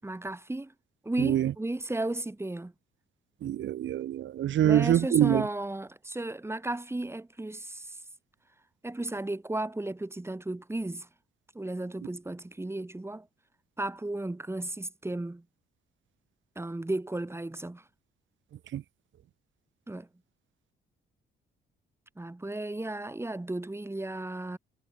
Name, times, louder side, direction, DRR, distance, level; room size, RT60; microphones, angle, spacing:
voice 1, 0.0-0.7 1.0-2.7 4.6-8.0 8.8-11.1 11.5-13.3 13.8-15.4 16.6-17.9 19.9-20.1 22.2-24.6, right 2 dB, 10° right, 7.1 m, -34 dB
voice 2, 1.2-1.5 3.4-5.4 18.7-18.8, right 11 dB, 70° right, 4.2 m, -25 dB
cardioid pair, 90°, 20 cm